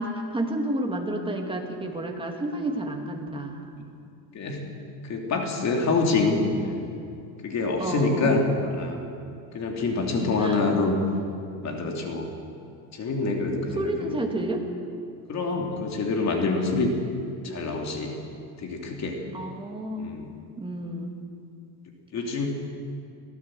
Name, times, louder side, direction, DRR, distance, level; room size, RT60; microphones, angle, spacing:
voice 1, 0.0-3.6 7.8-8.4 10.4-10.6 13.7-14.7 19.3-20.1 20.6-21.2, right 1 dB, 10° right, 2 dB, 2.3 m, -30 dB
voice 2, 4.3-4.7 5.0-6.9 7.4-8.4 8.8-9.0 9.5-11.0 11.6-12.3 12.9-14.2 15.3-16.9 17.4-18.1 18.6-19.2 20.0-20.2 22.1-22.5, left 3 dB, 40° left, 2 dB, 2.9 m, -26 dB
23.0 x 15.5 x 7.7 m, 2.5 s
cardioid pair, 135°, 42 cm